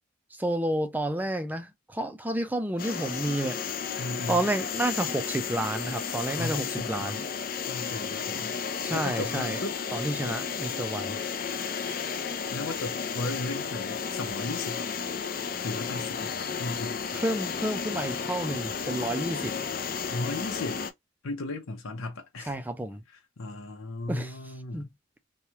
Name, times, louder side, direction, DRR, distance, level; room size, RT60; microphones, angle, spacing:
voice 1, 0.4-3.6 4.3-7.2 8.8-9.6 9.9-11.2 17.1-19.6 22.5-23.0 24.1-24.4 24.7-24.9, right 1 dB, 10° right, 0.4 m, -30 dB
sound 1, 2.8-20.9, left 6 dB, 45° left, 0.5 m, -33 dB
voice 2, 4.0-4.4 6.4-7.2 7.7-8.5 8.9-9.8 12.5-14.9 15.6-16.3 16.6-17.0 20.1-20.8 21.2-22.5 23.4-24.9, left 2 dB, 80° left, 0.8 m, -35 dB
3.2 x 2.3 x 2.8 m
head